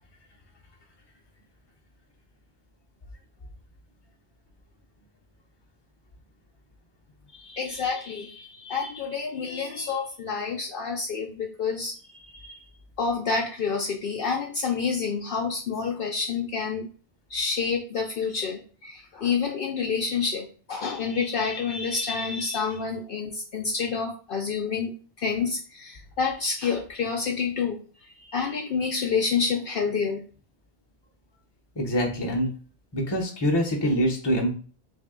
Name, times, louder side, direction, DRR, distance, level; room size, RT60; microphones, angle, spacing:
voice 1, 7.3-12.6 13.0-16.9 17.3-30.2, left 5 dB, 60° left, 1 dB, 0.7 m, -28 dB
voice 2, 31.8-32.5 32.9-34.5, equal, 25° left, 2 dB, 0.7 m, -24 dB
3.4 x 2.6 x 3.6 m, 0.40 s
omnidirectional pair, 1.1 m